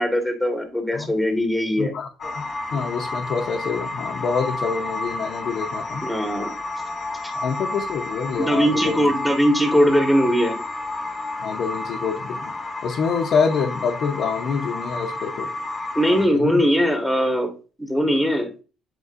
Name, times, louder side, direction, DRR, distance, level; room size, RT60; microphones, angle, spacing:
voice 1, 0.0-1.9 6.0-6.5 8.4-10.6 15.9-17.5 17.8-18.5, equal, ahead, 3 dB, 1.8 m, -20 dB
voice 2, 1.8-6.1 7.3-9.1 11.4-12.5 12.8-15.5 16.1-16.6, left 5 dB, 65° left, 0 dB, 0.9 m, -26 dB
sound 1, 2.2-16.3, left 2 dB, 25° left, 1.2 m, -31 dB
8.0 x 4.6 x 2.6 m, 0.34 s
cardioid pair, 105°, 0 cm